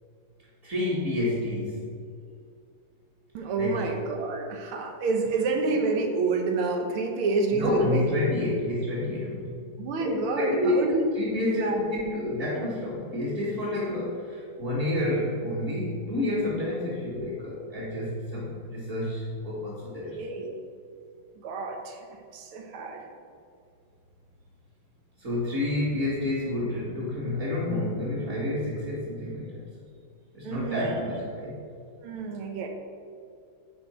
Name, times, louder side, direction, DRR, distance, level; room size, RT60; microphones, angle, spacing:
voice 1, 0.6-1.9 3.5-3.8 7.5-9.6 10.0-20.2 25.2-29.6 30.3-31.6, left 1 dB, 40° right, -9 dB, 1.9 m, -29 dB
voice 2, 3.3-8.2 9.8-11.1 11.5-11.8 20.1-20.6 21.4-22.0 22.3-23.0 30.4-31.0 32.0-32.7, right 3 dB, 90° right, 3 dB, 1.8 m, -28 dB
10.5 x 4.6 x 4.3 m, 2.4 s
omnidirectional pair, 2.3 m